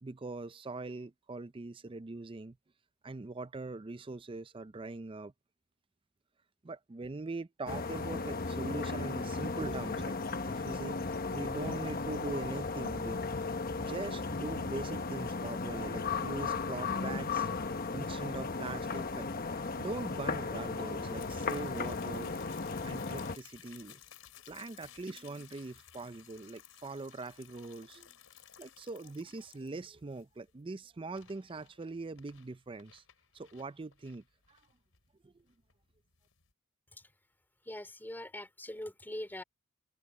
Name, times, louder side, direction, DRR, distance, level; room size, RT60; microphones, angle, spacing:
voice 1, 0.0-2.6 3.0-5.3 6.6-13.2 13.8-17.6 17.9-19.3 19.5-22.3 22.8-24.0 24.5-28.1 28.6-33.0 33.3-34.6 35.2-35.4, right 3 dB, 25° right, 0.5 m, -42 dB
sound 1, 7.7-23.4, left 4 dB, 45° left, 1.1 m, -36 dB
sound 2, 21.2-36.5, left 11 dB, 85° left, 4.1 m, -57 dB
voice 2, 37.6-39.4, left 1 dB, 10° left, 3.4 m, -42 dB
open air
head